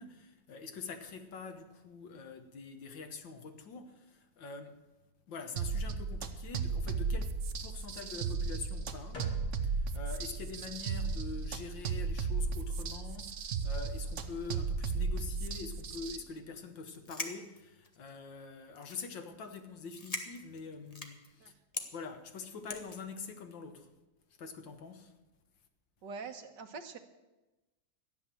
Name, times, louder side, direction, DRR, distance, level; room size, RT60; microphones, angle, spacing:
voice 1, 0.0-4.8 5.3-9.3 9.6-21.5 21.9-23.9 24.4-25.1, left 4 dB, 85° left, 2.1 m, -45 dB
sound 1, 5.6-16.2, right 4 dB, 50° right, 1.1 m, -35 dB
sound 2, 9.1-15.3, right 1 dB, 65° left, 2.9 m, -54 dB
sound 3, 16.9-18.2 18.8-19.2 19.5-19.6 19.9-21.3 21.7-21.9 22.7-23.0, left 2 dB, 25° left, 1.2 m, -41 dB
voice 2, 26.0-27.0, right 4 dB, 70° right, 1.7 m, -44 dB
14.0 x 9.9 x 7.6 m
omnidirectional pair, 2.0 m